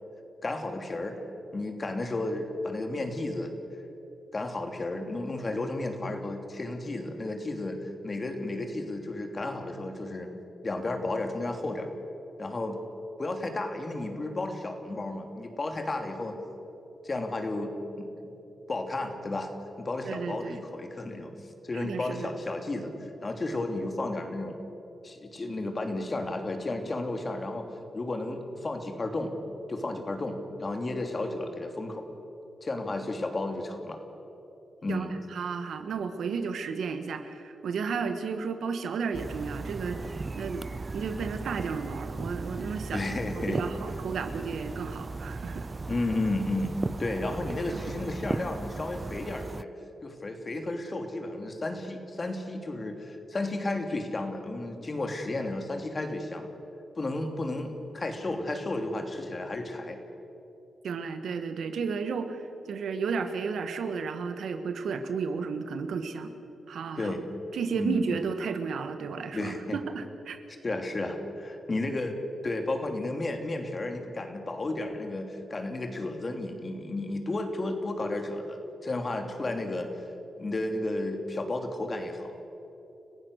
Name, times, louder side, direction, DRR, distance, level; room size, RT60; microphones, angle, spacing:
voice 1, 0.4-1.2 1.5-3.5 4.3-10.3 10.6-11.9 12.4-12.8 13.2-16.4 17.0-18.3 18.7-19.5 19.8-21.3 21.6-22.9 23.2-24.6 25.0-27.7 27.9-29.3 29.7-32.0 32.6-34.0 34.8-35.2 42.9-43.6 45.9-49.7 50.0-56.5 57.0-60.0 67.0-67.2 67.7-68.0 69.3-69.8 70.6-79.9 80.4-82.4, left 2 dB, 40° left, 5 dB, 2.9 m, -33 dB
voice 2, 20.0-20.6 21.7-22.3 34.9-40.7 40.9-43.0 43.5-45.7 47.7-47.9 60.8-66.3 66.7-67.1 67.5-70.4, right 5 dB, 80° right, 8 dB, 1.6 m, -33 dB
sound 1, 39.1-49.6, right 3 dB, 35° right, 0.5 m, -37 dB
30.0 x 15.5 x 6.6 m, 3.0 s
cardioid pair, 65°, 0 cm